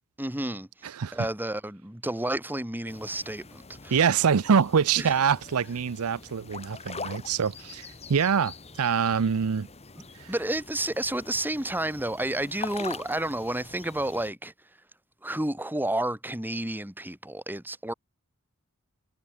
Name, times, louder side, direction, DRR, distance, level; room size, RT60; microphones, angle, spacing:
voice 1, 0.2-4.0 5.0-5.2 10.0-14.5 15.2-17.9, right 1 dB, 10° right, 2.1 m, -31 dB
voice 2, 0.8-1.3 3.9-9.7 10.2-10.3, right 6 dB, 70° right, 0.5 m, -25 dB
sound 1, 2.9-14.3, left 4 dB, 30° left, 2.3 m, -44 dB
head